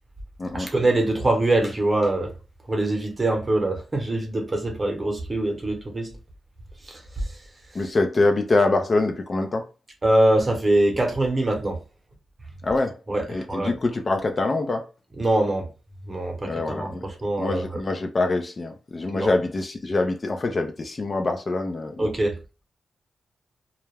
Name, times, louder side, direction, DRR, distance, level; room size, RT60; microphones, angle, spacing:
voice 1, 0.5-2.3 2.7-6.2 6.8-7.3 10.0-11.8 13.1-13.7 15.2-15.7 16.0-17.8 19.1-19.3 22.0-22.4, right 1 dB, 30° right, 0.9 m, -23 dB
voice 2, 7.7-9.7 12.6-13.0 13.3-14.8 16.4-17.1 17.4-22.1, left 2 dB, 40° left, 0.4 m, -24 dB
2.3 x 2.1 x 3.2 m
cardioid pair, 75°, 0 cm